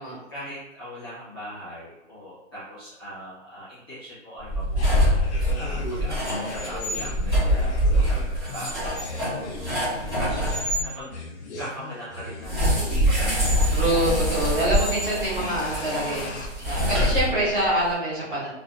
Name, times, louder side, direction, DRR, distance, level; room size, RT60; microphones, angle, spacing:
voice 1, 0.0-11.2 11.6-13.8 16.6-16.9, equal, 20° left, -12 dB, 0.7 m, -40 dB
sound 1, 4.4-10.8 12.4-17.7, equal, 20° right, 0.6 m, -24 dB
sound 2, 4.7-16.5, left 2 dB, 60° left, 0.7 m, -38 dB
voice 2, 6.0-6.3 7.4-8.2 9.9-10.2 13.7-18.5, right 1 dB, 40° right, -8 dB, 1.2 m, -27 dB
2.6 x 2.2 x 2.3 m, 0.98 s
hypercardioid pair, 170°, 38 cm